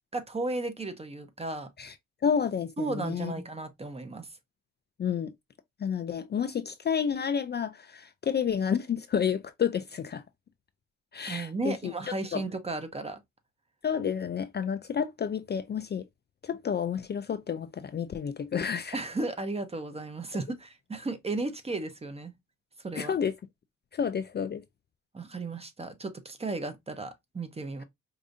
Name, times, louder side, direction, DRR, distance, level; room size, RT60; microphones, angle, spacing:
voice 1, 0.1-1.7 2.8-4.3 11.2-13.2 18.9-22.3 22.8-23.1 25.1-27.8, right 3 dB, 20° right, 0.7 m, -34 dB
voice 2, 2.2-3.3 5.0-5.3 5.8-10.2 11.1-11.9 12.3-12.4 13.8-16.0 16.4-19.0 23.0-23.3 23.9-24.6, left 7 dB, 35° left, 0.4 m, -30 dB
4.8 x 2.6 x 2.5 m
cardioid pair, 110°, 29 cm